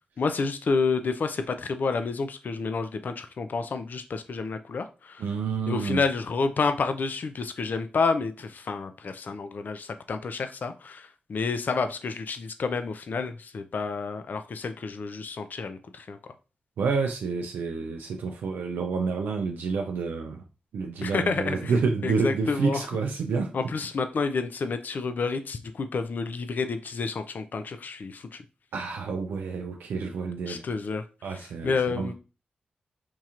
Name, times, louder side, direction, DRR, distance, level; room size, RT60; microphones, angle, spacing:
voice 1, 0.2-5.3 5.7-16.2 21.0-22.8 23.5-28.4 30.5-31.0 31.3-32.1, left 4 dB, 65° left, 0.4 m, -29 dB
voice 2, 5.2-6.0 16.8-20.4 20.7-23.6 28.7-30.6 31.2-32.1, right 5 dB, 90° right, 0.3 m, -29 dB
4.5 x 2.8 x 2.4 m
cardioid pair, 45°, 3 cm